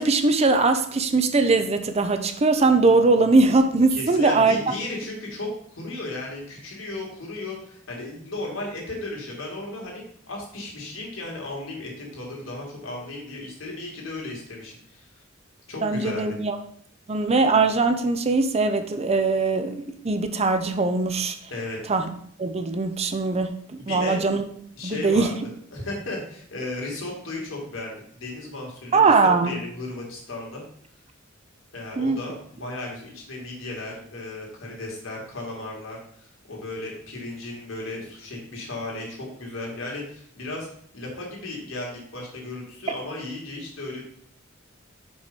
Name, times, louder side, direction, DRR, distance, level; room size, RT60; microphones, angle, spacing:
voice 1, 0.0-4.6 15.8-16.6 17.1-21.3 21.9-22.1 22.4-23.5 23.9-24.4 24.8-25.3 28.9-29.5 32.0-32.2, right 3 dB, 30° right, 7 dB, 0.6 m, -21 dB
voice 2, 3.9-15.1 15.7-16.4 21.5-21.8 23.8-24.2 24.8-30.6 31.7-40.7 40.9-44.0, left 2 dB, 75° left, -2 dB, 2.3 m, -35 dB
5.4 x 4.8 x 5.2 m, 0.64 s
head